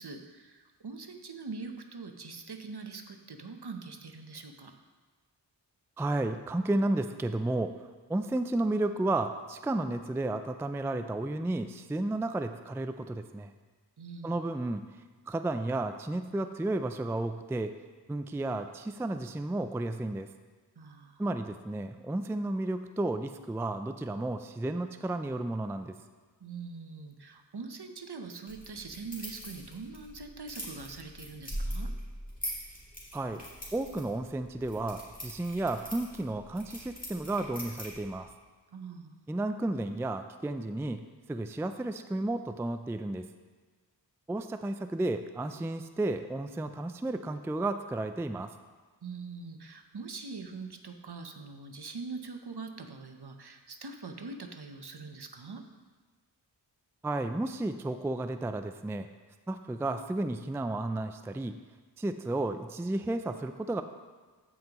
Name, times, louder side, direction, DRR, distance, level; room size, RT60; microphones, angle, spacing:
voice 1, 0.0-4.7 14.0-14.4 20.8-21.2 26.4-31.9 38.7-39.2 49.0-55.6, right 4 dB, 60° right, 5 dB, 0.9 m, -43 dB
voice 2, 6.0-7.7 8.1-13.5 14.2-14.9 15.3-17.7 18.1-20.3 21.2-26.0 33.1-33.4 33.7-38.3 39.3-41.0 41.3-43.3 44.3-48.5 57.0-59.1 59.5-61.5 62.0-63.8, right 2 dB, 5° right, 8 dB, 0.3 m, -32 dB
sound 1, 28.5-38.2, equal, 20° left, 2.6 m, -42 dB
15.5 x 5.5 x 3.0 m, 1.4 s
wide cardioid pair, 40°, 44 cm